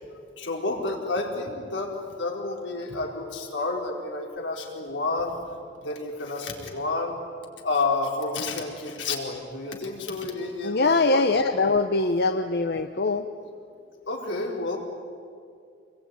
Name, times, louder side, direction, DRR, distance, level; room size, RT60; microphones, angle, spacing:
voice 1, 0.4-1.9 2.2-5.4 5.8-7.2 7.6-11.3 14.1-14.8, left 3 dB, 90° left, 0 dB, 4.4 m, -30 dB
voice 2, 10.6-13.2, left 3 dB, 60° left, 7 dB, 0.8 m, -23 dB
26.5 x 22.0 x 9.6 m, 2.4 s
head